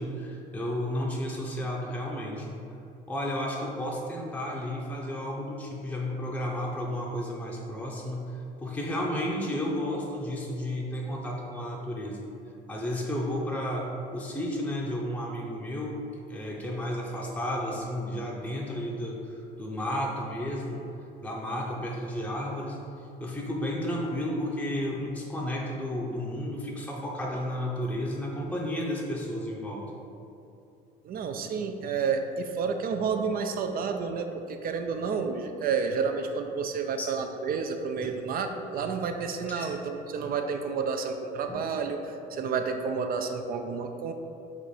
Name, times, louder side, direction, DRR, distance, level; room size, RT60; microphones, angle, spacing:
voice 1, 0.0-2.5 3.1-8.3 8.6-12.2 12.7-15.9 16.3-19.2 19.6-20.8 21.2-22.8 23.2-29.8 37.0-37.1 39.5-39.7 41.5-41.6, left 1 dB, 5° left, -2 dB, 0.6 m, -32 dB
voice 2, 31.0-44.1, right 5 dB, 50° right, 6 dB, 0.4 m, -30 dB
4.2 x 2.5 x 4.8 m, 2.8 s
cardioid pair, 95°, 20 cm